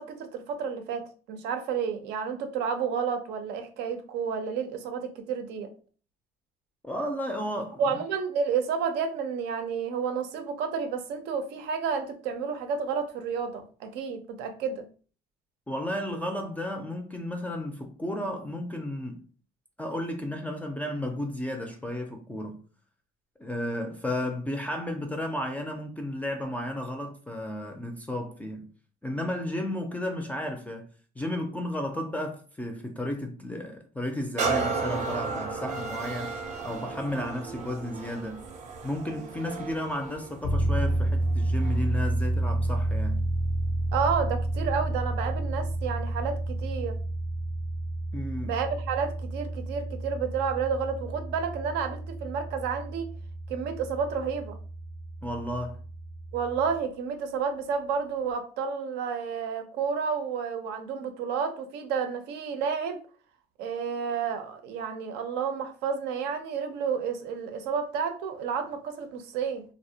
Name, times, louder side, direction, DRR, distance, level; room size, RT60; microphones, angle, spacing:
voice 1, 0.0-5.7 7.8-14.8 43.9-47.0 48.4-53.1 53.5-54.6 56.3-63.0 63.6-69.6, right 6 dB, 90° right, 0.5 m, -31 dB
voice 2, 6.8-7.8 15.7-19.2 19.8-22.6 23.4-28.7 29.0-30.8 31.2-36.3 36.6-38.4 38.8-43.2 48.1-48.5 55.2-55.8, left 1 dB, 10° left, 0.3 m, -33 dB
sound 1, 34.4-42.0 42.6-42.7, right 4 dB, 45° right, 0.5 m, -34 dB
sound 2, 40.4-56.8, right 1 dB, 75° left, 0.6 m, -30 dB
2.4 x 2.0 x 2.7 m
cardioid pair, 110°, 17 cm